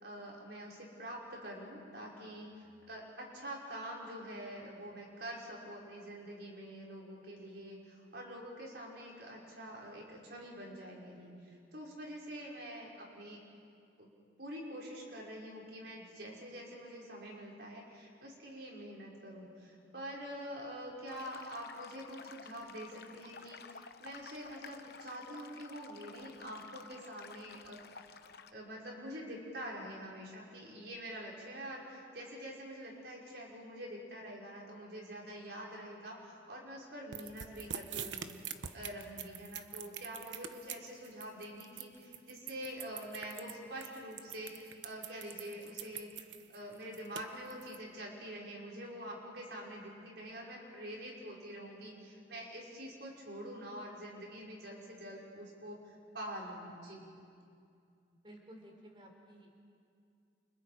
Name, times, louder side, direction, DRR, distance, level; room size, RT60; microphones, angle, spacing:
voice 1, 0.0-11.3 11.7-13.4 14.0-14.1 14.4-27.8 28.5-38.4 38.7-46.1 46.5-57.1, equal, 65° right, -3 dB, 5.6 m, -46 dB
sound 1, 21.1-28.5, left 5 dB, 55° left, 0.9 m, -53 dB
sound 2, 37.1-47.8, right 9 dB, 90° right, 1.1 m, -44 dB
voice 2, 58.2-59.6, equal, 25° right, 2 dB, 3.8 m, -54 dB
29.5 x 29.0 x 5.1 m, 2.5 s
head